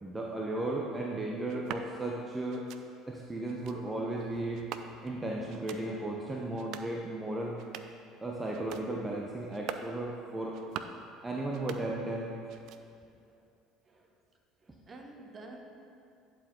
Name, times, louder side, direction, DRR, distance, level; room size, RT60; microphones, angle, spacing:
voice 1, 0.0-2.6 3.1-4.6 5.0-7.6 8.2-10.6 11.2-12.3, right 2 dB, 15° right, -1 dB, 0.7 m, -35 dB
sound 1, 1.5-1.9 2.5-2.8 3.5-3.8 4.5-5.2 5.5-5.8 6.5-6.9 7.5-8.0 8.5-8.9 9.5-9.9 10.5-11.0 11.5-12.2 12.5-13.1, right 9 dB, 65° right, 0.4 m, -44 dB
voice 2, 14.6-15.6, right 2 dB, 35° right, 2 dB, 1.1 m, -50 dB
11.0 x 4.7 x 3.7 m, 2.5 s
hypercardioid pair, 70°, 0 cm